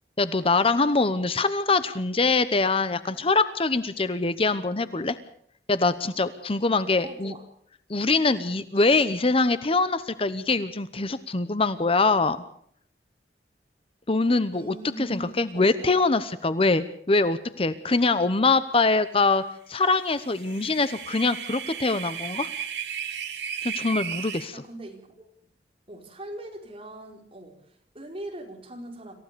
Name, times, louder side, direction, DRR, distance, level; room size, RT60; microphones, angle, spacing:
voice 1, 0.2-5.2 5.7-7.3 7.9-12.4 14.1-19.4 19.7-22.5 23.6-24.6, left 3 dB, 35° left, 13 dB, 0.9 m, -23 dB
voice 2, 7.0-7.4 14.5-16.0 24.5-25.3 25.9-29.1, right 1 dB, 30° right, 2 dB, 4.8 m, -41 dB
sound 1, 20.2-24.5, right 8 dB, 75° right, 2.4 m, -34 dB
27.0 x 15.5 x 6.8 m, 0.65 s
head